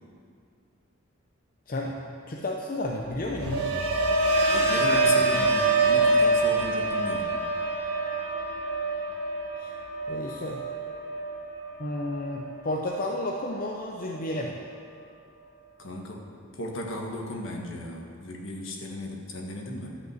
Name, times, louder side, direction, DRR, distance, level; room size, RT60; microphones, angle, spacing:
voice 1, 1.7-2.0 2.3-3.7 9.6-9.7 10.1-10.6 11.8-14.6, left 1 dB, 40° left, 0 dB, 0.7 m, -32 dB
sound 1, 3.0-13.1 13.4-13.9, right 2 dB, 90° right, 1.7 m, -26 dB
voice 2, 4.5-7.4 15.8-20.0, left 1 dB, 60° left, 0 dB, 1.5 m, -35 dB
12.0 x 5.6 x 7.7 m, 2.4 s
head